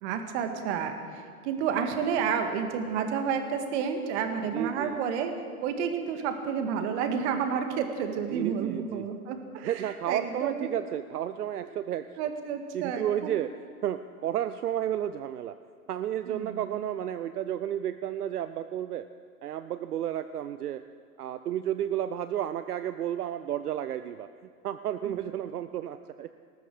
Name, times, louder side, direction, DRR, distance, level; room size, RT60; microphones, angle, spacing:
voice 1, 0.0-5.3 5.6-10.7 12.2-13.3 16.3-16.8 25.1-25.2, right 7 dB, 45° right, 6 dB, 2.0 m, -30 dB
voice 2, 4.5-5.0 8.3-9.0 9.6-12.1 12.7-13.5 13.8-15.5 15.9-19.1 19.4-20.8 21.2-24.3 24.6-26.3, right 11 dB, 80° right, 11 dB, 0.7 m, -32 dB
19.5 x 13.5 x 4.9 m, 2.2 s
hypercardioid pair, 110°, 45 cm